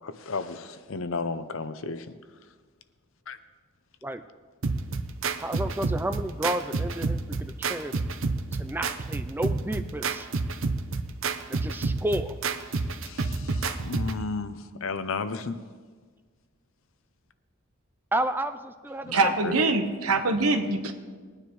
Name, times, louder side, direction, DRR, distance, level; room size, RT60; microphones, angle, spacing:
voice 1, 0.0-2.1 3.3-3.4 12.7-15.6 19.0-19.6, left 4 dB, 65° left, 11 dB, 0.7 m, -34 dB
sound 1, 4.6-14.2, right 3 dB, 65° right, 0.7 m, -29 dB
voice 2, 5.4-7.9 8.6-10.3 11.5-12.4 18.1-19.1 19.5-19.8, right 1 dB, 10° right, 9 dB, 0.3 m, -31 dB
voice 3, 19.1-20.9, right 3 dB, 85° right, 7 dB, 1.1 m, -24 dB
20.5 x 9.8 x 3.1 m, 1.5 s
head